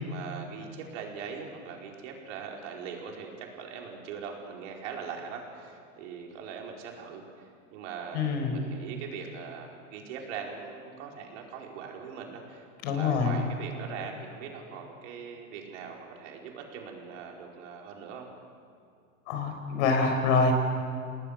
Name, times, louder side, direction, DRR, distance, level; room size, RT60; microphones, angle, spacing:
voice 1, 0.0-18.3, right 6 dB, 55° right, 0 dB, 4.8 m, -41 dB
voice 2, 8.1-8.6 12.8-13.4 19.3-20.5, left 4 dB, 55° left, 5 dB, 5.2 m, -25 dB
28.5 x 19.5 x 6.7 m, 2.4 s
hypercardioid pair, 95°, 42 cm